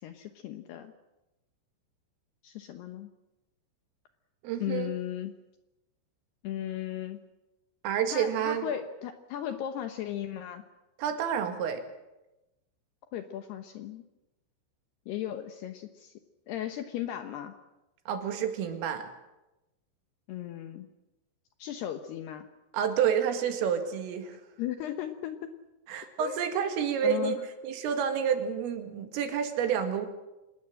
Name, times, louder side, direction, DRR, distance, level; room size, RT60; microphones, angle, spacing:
voice 1, 0.0-0.9 2.4-3.1 4.6-5.3 6.4-7.2 8.1-10.6 13.1-14.0 15.1-16.1 16.5-17.5 20.3-20.9 21.6-22.5 24.6-25.5 26.2-26.4 27.0-27.4, left 11 dB, 75° left, 8 dB, 2.6 m, -36 dB
voice 2, 4.4-4.9 7.8-8.7 11.0-11.8 18.1-19.1 22.7-24.4 25.9-30.1, right 8 dB, 80° right, 6 dB, 4.7 m, -29 dB
26.0 x 19.5 x 7.7 m, 0.98 s
omnidirectional pair, 5.8 m